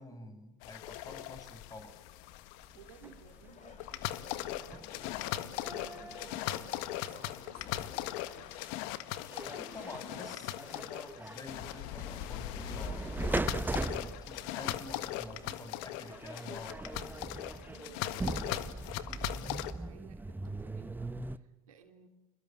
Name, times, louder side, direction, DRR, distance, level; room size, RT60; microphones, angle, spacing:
voice 1, 0.0-2.0 9.4-17.0, left 2 dB, 20° left, 7 dB, 7.0 m, -48 dB
sound 1, 0.6-19.7, left 14 dB, 70° left, 1.5 m, -39 dB
sound 2, 2.6-8.9 9.2-21.4, right 2 dB, 10° right, 1.0 m, -41 dB
voice 2, 2.7-3.8 4.2-8.5 17.5-22.1, right 7 dB, 90° right, 5 dB, 3.1 m, -59 dB
Bark, 2.9-10.4 10.8-10.9, left 8 dB, 40° left, 2.5 m, -56 dB
29.0 x 22.0 x 7.6 m, 1.0 s
hypercardioid pair, 80°, 17 cm